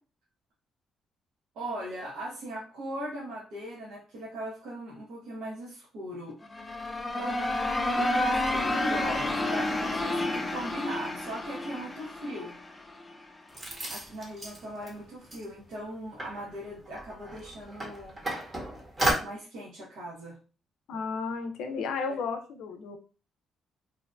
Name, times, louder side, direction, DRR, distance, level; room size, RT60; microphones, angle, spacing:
voice 1, 1.5-6.4 7.2-7.4 7.9-12.5 13.8-18.2 19.2-20.3 22.1-22.2, right 1 dB, 80° right, -5 dB, 0.7 m, -39 dB
sound 1, 6.4-13.2, left 1 dB, 20° left, 0.4 m, -30 dB
sound 2, 13.5-14.9 15.2-15.5 15.7-15.8 16.2-19.1, right 1 dB, 30° right, 0.8 m, -34 dB
voice 2, 20.9-23.0, left 5 dB, 80° left, 6 dB, 0.4 m, -33 dB
2.6 x 2.2 x 2.4 m, 0.35 s
cardioid pair, 90°, 0 cm